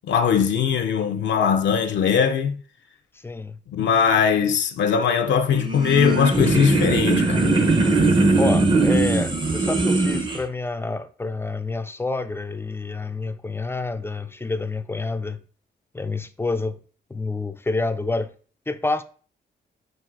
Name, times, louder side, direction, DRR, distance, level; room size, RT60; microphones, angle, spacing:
voice 1, 0.1-2.6 3.7-7.5, left 7 dB, 70° left, 0.5 m, -20 dB
voice 2, 3.2-3.6 8.3-15.4 15.9-16.8 17.1-18.3 18.7-19.0, left 3 dB, 10° left, 0.4 m, -28 dB
sound 1, 5.5-10.4, right 3 dB, 25° right, 0.7 m, -20 dB
7.3 x 2.5 x 2.5 m
cardioid pair, 70°, 19 cm